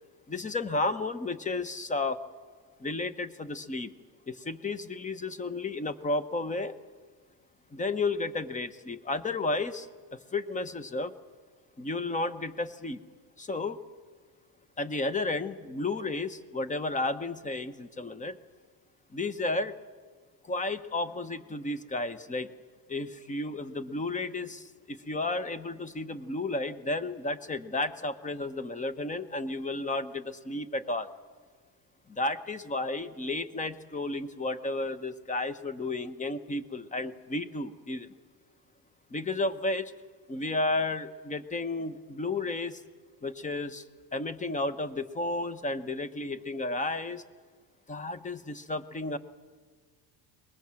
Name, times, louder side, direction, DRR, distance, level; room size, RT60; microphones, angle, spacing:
voice 1, 0.3-2.2 2.8-3.9 4.3-6.7 7.7-9.9 10.3-11.1 11.8-13.0 13.4-13.8 14.8-18.4 19.1-19.8 20.4-22.5 22.9-31.1 32.1-38.1 39.1-39.9 40.3-42.8 43.2-43.8 44.1-47.2 47.9-49.2, left 2 dB, 15° left, 13 dB, 0.9 m, -32 dB
22.5 x 20.5 x 7.6 m, 1.5 s
cardioid pair, 130°, 44 cm